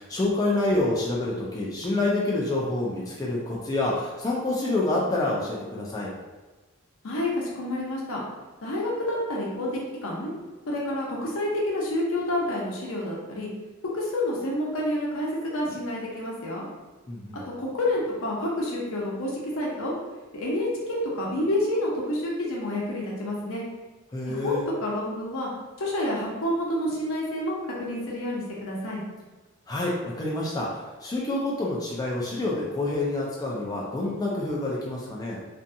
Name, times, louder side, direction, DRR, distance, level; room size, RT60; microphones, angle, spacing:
voice 1, 0.0-6.1 17.1-17.4 24.1-24.6 29.7-35.4, left 2 dB, 15° left, -4 dB, 0.3 m, -27 dB
voice 2, 7.0-8.2 8.6-10.3 10.7-13.5 13.9-16.7 17.3-19.9 20.3-23.7 24.3-25.5 25.8-29.0, left 1 dB, 65° left, -3 dB, 0.7 m, -29 dB
2.6 x 2.3 x 2.6 m, 1.2 s
head